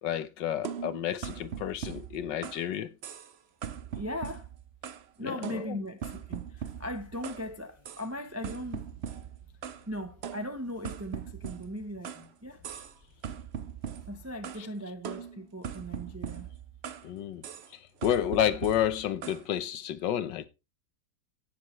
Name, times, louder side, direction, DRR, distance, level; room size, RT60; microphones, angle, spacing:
voice 1, 0.0-2.9 5.2-5.8 17.0-17.4 18.0-20.5, left 10 dB, 70° left, 1.5 m, -30 dB
sound 1, 0.6-2.7 3.0-3.3 3.6-5.1 5.4-7.5 7.8-8.1 8.4-9.9 10.2-12.3 12.6-13.0 13.2-14.7 15.0-17.1 17.4-17.7 18.0-19.4, right 8 dB, 75° right, 0.6 m, -40 dB
voice 2, 3.9-4.5 5.2-8.8 9.9-12.1 12.4-12.6 14.1-16.5, equal, 20° right, 0.3 m, -38 dB
sound 2, 6.6-14.6, left 1 dB, 5° left, 7.9 m, -60 dB
17.5 x 7.1 x 3.1 m
omnidirectional pair, 2.0 m